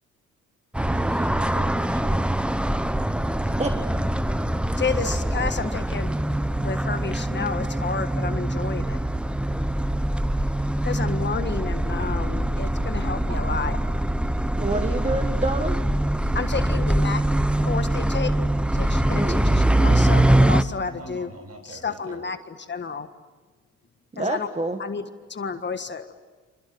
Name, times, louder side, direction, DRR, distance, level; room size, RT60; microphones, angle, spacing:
sound 1, 0.7-20.6, right 1 dB, 5° right, 0.9 m, -23 dB
voice 1, 0.7-2.3 13.3-13.5 14.7-15.1 16.1-16.6 20.9-22.2, right 3 dB, 55° right, 7 dB, 6.6 m, -43 dB
voice 2, 4.8-6.1 6.6-9.0 10.8-13.8 16.3-17.2 17.6-18.4 18.7-21.3 21.6-23.1 24.2-24.5 24.8-26.1, left 5 dB, 35° left, 9 dB, 1.6 m, -31 dB
voice 3, 14.6-15.8 19.1-19.4 24.1-24.8, right 2 dB, 20° right, 6 dB, 1.6 m, -27 dB
27.5 x 26.5 x 7.9 m, 1.3 s
cardioid pair, 90°, 30 cm